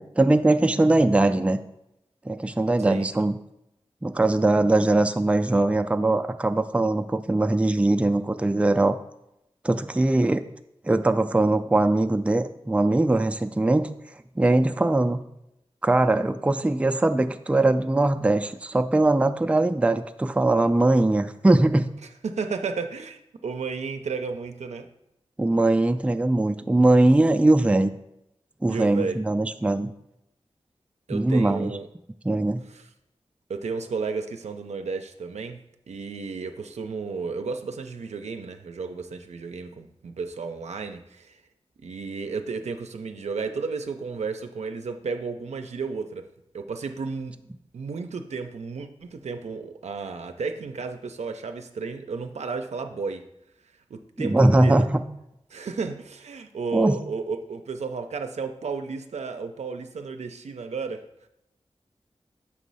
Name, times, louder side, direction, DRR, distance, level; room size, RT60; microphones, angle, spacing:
voice 1, 0.0-1.6 2.3-3.3 4.0-9.0 9.6-10.4 10.8-13.9 14.4-15.2 15.8-21.9 25.4-27.9 28.6-29.9 31.1-31.7 32.2-32.6 54.2-55.0 56.7-57.0, right 2 dB, 10° right, 7 dB, 0.3 m, -21 dB
voice 2, 22.2-24.9 28.7-29.2 31.1-31.9 32.7-32.9 33.5-41.4 41.8-46.3 46.5-47.4 47.7-53.2 53.9-54.9 55.5-61.0, right 4 dB, 85° right, 6 dB, 0.5 m, -33 dB
6.2 x 3.1 x 5.4 m, 0.83 s
wide cardioid pair, 60°, 11 cm